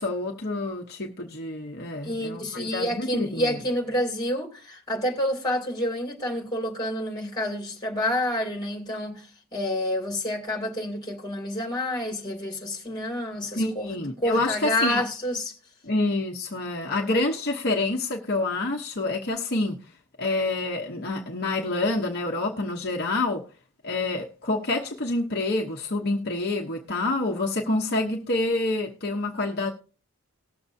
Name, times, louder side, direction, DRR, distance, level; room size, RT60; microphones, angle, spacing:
voice 1, 0.0-3.5 13.5-15.1 15.8-19.8 20.2-23.4 23.8-29.7, left 2 dB, 50° left, 1.0 m, -27 dB
voice 2, 2.0-15.5, left 1 dB, 20° left, 2.5 m, -29 dB
19.5 x 6.9 x 2.6 m
head